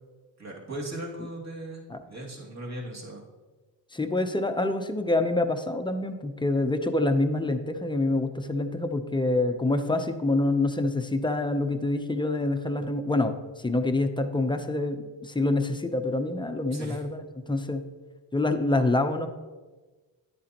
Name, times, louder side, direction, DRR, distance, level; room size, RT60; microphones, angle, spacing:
voice 1, 0.4-3.2 16.7-17.0, right 1 dB, 40° right, -2 dB, 2.3 m, -38 dB
voice 2, 3.9-17.8 18.3-19.3, left 2 dB, 10° left, 7 dB, 0.6 m, -26 dB
10.5 x 9.2 x 2.9 m, 1.3 s
cardioid pair, 100°, 43 cm